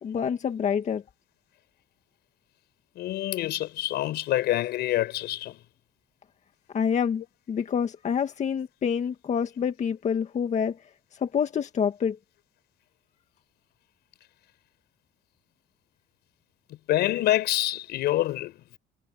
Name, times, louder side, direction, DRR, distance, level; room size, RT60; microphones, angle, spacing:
voice 1, 0.0-1.0 6.7-10.8 11.2-12.2, left 7 dB, 45° left, 1.9 m, -27 dB
voice 2, 3.0-5.6 16.9-18.8, left 14 dB, 75° left, 5.8 m, -26 dB
cardioid pair, 110°, 17 cm